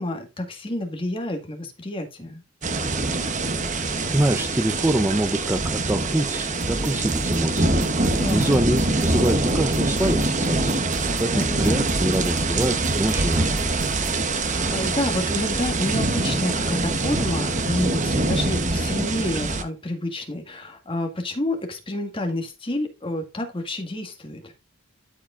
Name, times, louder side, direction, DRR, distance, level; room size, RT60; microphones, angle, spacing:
voice 1, 0.0-2.4 8.1-8.7 11.3-11.9 14.3-24.5, left 1 dB, 25° left, 1.8 m, -29 dB
sound 1, 2.6-19.6, right 2 dB, 35° right, 1.0 m, -24 dB
voice 2, 3.6-7.8 8.3-10.8 11.2-13.5, right 1 dB, 10° right, 0.5 m, -25 dB
sound 2, 6.6-14.2, right 1 dB, 55° right, 1.5 m, -34 dB
13.0 x 5.0 x 2.5 m
head